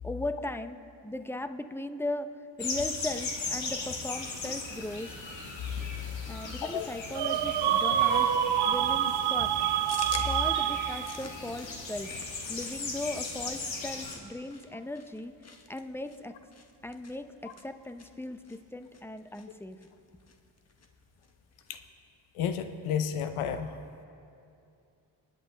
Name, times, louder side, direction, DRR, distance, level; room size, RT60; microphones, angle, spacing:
voice 1, 0.0-0.8 1.0-2.3 2.6-5.1 6.3-9.5 10.2-12.1 12.5-15.3 15.7-16.3 16.8-19.8, left 1 dB, 5° left, 9 dB, 0.6 m, -37 dB
sound 1, 2.6-14.2, left 3 dB, 65° left, 1.9 m, -38 dB
sound 2, 7.1-11.3, right 10 dB, 55° right, 0.7 m, -27 dB
sound 3, 9.9-21.9, left 4 dB, 30° left, 1.1 m, -49 dB
voice 2, 22.3-23.8, left 8 dB, 85° left, 9 dB, 0.8 m, -31 dB
24.0 x 8.4 x 3.3 m, 2.6 s
cardioid pair, 60°, 49 cm